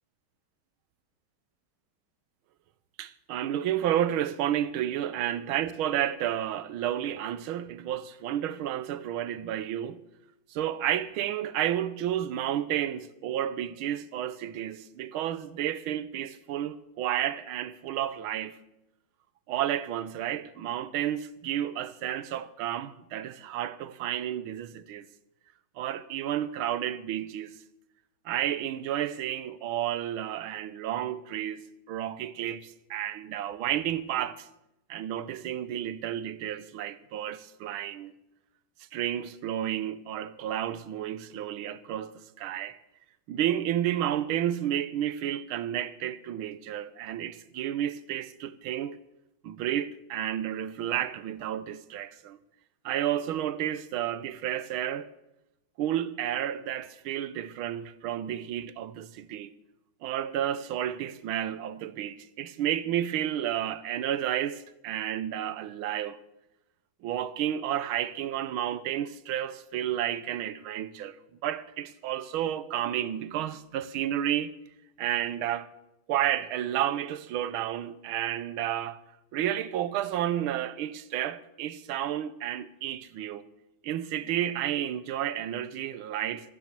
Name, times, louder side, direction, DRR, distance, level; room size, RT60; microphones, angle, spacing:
voice 1, 3.0-10.0 10.5-18.6 19.5-25.1 25.8-27.6 28.2-34.5 34.9-38.1 38.9-42.8 43.3-49.0 49.4-52.4 52.8-55.1 55.8-59.5 60.0-66.2 67.0-71.2 71.4-74.5 75.0-75.7 76.1-79.0 79.3-83.4 83.8-86.5, right 11 dB, 90° right, 1.6 m, -31 dB
15.0 x 9.5 x 6.7 m
omnidirectional pair, 2.2 m